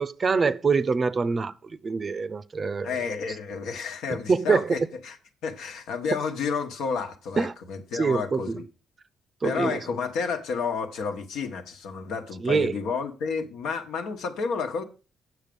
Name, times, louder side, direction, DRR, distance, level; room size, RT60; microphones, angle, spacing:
voice 1, 0.0-2.9 4.1-4.8 7.4-7.5 7.9-8.6 9.4-9.8 12.4-12.7, right 4 dB, 35° right, 0.5 m, -25 dB
voice 2, 2.8-5.2 5.4-8.6 9.4-14.8, left 5 dB, 85° left, 1.3 m, -31 dB
8.1 x 6.5 x 5.2 m
cardioid pair, 90°, 0 cm